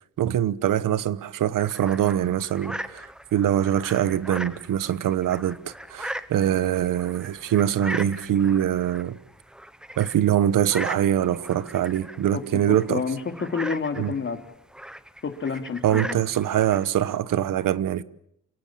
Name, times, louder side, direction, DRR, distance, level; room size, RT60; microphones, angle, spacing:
voice 1, 0.2-9.2 10.0-13.0 14.0-14.1 15.8-18.0, right 11 dB, 85° right, 1.2 m, -23 dB
sound 1, 1.6-17.2, equal, ahead, 0.9 m, -39 dB
voice 2, 12.7-14.4 15.2-16.2, left 5 dB, 40° left, 2.9 m, -29 dB
27.5 x 18.0 x 8.7 m
wide cardioid pair, 145°, 32 cm